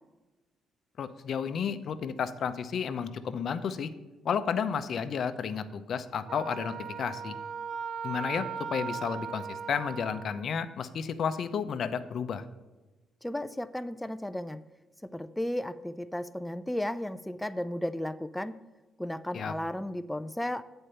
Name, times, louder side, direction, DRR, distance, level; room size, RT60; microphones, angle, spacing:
voice 1, 1.0-3.9 4.2-7.3 8.0-12.4 19.3-19.5, left 7 dB, 60° left, 11 dB, 0.6 m, -32 dB
Wind instrument woodwind instrument, 6.3-10.4, right 6 dB, 65° right, 0.4 m, -38 dB
voice 2, 13.2-14.6 15.0-18.6 19.0-20.6, left 1 dB, 5° left, 11 dB, 0.4 m, -34 dB
8.3 x 4.4 x 6.7 m, 1.2 s
cardioid pair, 90°, 0 cm